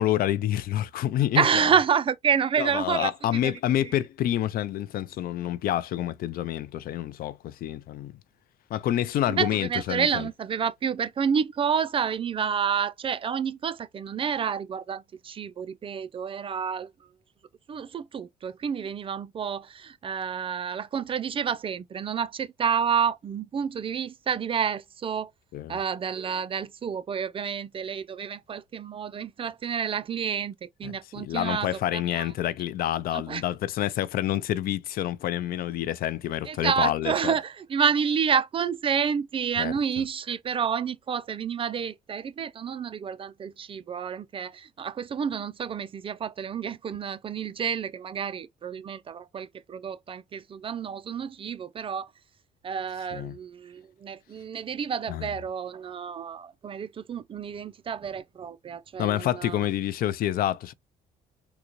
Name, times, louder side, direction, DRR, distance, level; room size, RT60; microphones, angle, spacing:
voice 1, 0.0-1.7 2.6-8.1 8.7-10.3 25.5-25.8 30.8-37.3 39.6-39.7 53.1-53.3 55.1-55.3 59.0-60.7, left 12 dB, 60° left, 0.4 m, -28 dB
voice 2, 1.4-3.1 3.4-3.5 9.3-16.9 17.7-25.3 25.7-32.3 33.1-33.4 36.5-52.1 52.6-59.6, right 7 dB, 30° right, 0.4 m, -29 dB
3.8 x 2.2 x 3.0 m
cardioid pair, 110°, 17 cm